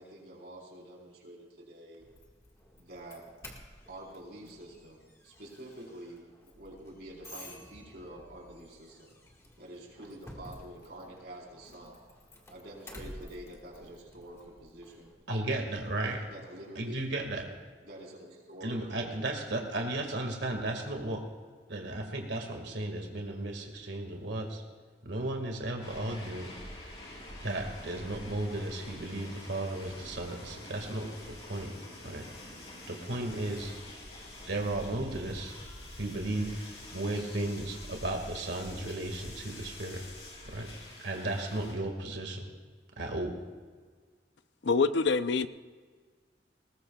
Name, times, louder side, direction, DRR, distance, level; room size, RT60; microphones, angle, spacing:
voice 1, 0.0-2.0 2.8-3.3 3.9-6.3 6.6-9.1 9.6-12.1 12.5-15.6 16.0-17.0 17.8-19.3, right 1 dB, 65° right, -2 dB, 4.1 m, -47 dB
Doorbell, 2.0-15.1, left 1 dB, 15° left, 1.7 m, -52 dB
voice 2, 15.3-16.2 16.8-17.5 18.6-21.2 21.7-24.6 25.0-26.6 27.4-31.7 32.0-32.3 32.9-33.7 34.5-35.5 36.0-36.5 36.9-40.0 40.4-40.7 41.0-42.5 43.0-43.4, right 2 dB, 90° right, 3 dB, 1.9 m, -35 dB
sound 1, 25.8-41.7, left 1 dB, 35° left, 5.0 m, -46 dB
voice 3, 44.6-45.5, left 4 dB, 85° left, 13 dB, 0.6 m, -25 dB
19.5 x 19.5 x 2.3 m, 1.5 s
head